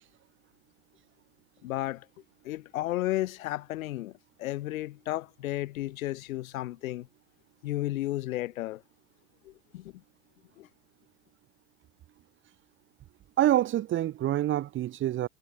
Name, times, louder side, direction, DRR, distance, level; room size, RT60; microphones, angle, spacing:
voice 1, 1.6-2.1 2.4-4.1 4.4-7.1 7.6-8.8 9.4-10.0 10.6-10.7, left 15 dB, 75° left, 1.5 m, -33 dB
voice 2, 13.4-15.3, right 13 dB, 30° right, 1.1 m, -26 dB
hypercardioid pair, 115°, 42 cm